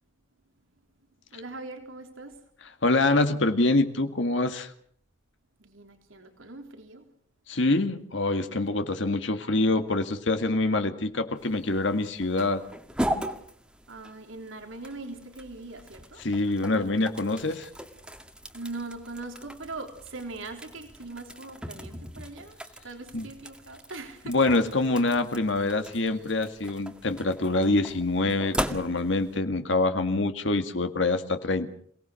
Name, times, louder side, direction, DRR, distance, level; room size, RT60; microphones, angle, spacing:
voice 1, 1.3-2.4 5.6-7.0 13.9-16.2 18.5-22.6 22.8-24.3, right 3 dB, 85° right, 4 dB, 3.6 m, -41 dB
voice 2, 2.8-4.7 7.5-12.6 16.2-17.7 23.1-23.3 24.3-31.7, left 2 dB, 65° left, 7 dB, 1.9 m, -25 dB
sound 1, 11.4-29.4, equal, 5° right, 1.9 m, -39 dB
27.5 x 18.5 x 6.4 m, 0.62 s
head